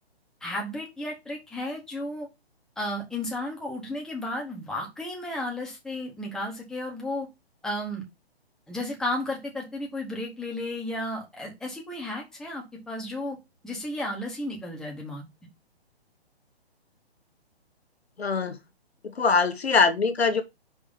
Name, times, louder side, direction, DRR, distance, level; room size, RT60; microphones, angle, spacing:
voice 1, 0.4-2.3 2.8-7.3 7.6-8.0 8.7-13.4 13.6-15.2, left 1 dB, ahead, 1.2 m, -33 dB
voice 2, 18.2-18.6 19.0-20.4, left 4 dB, 70° left, 1.1 m, -23 dB
5.4 x 3.3 x 5.4 m
figure-of-eight pair, 135°, 32 cm